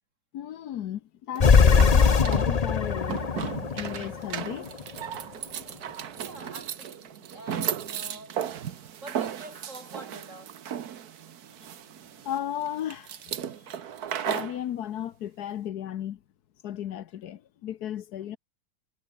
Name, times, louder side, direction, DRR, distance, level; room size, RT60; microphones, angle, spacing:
voice 1, 0.3-3.2 3.7-4.7 12.2-13.3 14.2-16.2 16.6-18.4, left 11 dB, 75° left, 1.4 m, -35 dB
sound 1, 1.4-4.8, left 5 dB, 35° left, 0.6 m, -21 dB
sound 2, 1.4-14.6, right 9 dB, 70° right, 1.6 m, -36 dB
voice 2, 6.2-10.5, right 1 dB, 45° right, 7.8 m, -46 dB
omnidirectional pair, 1.7 m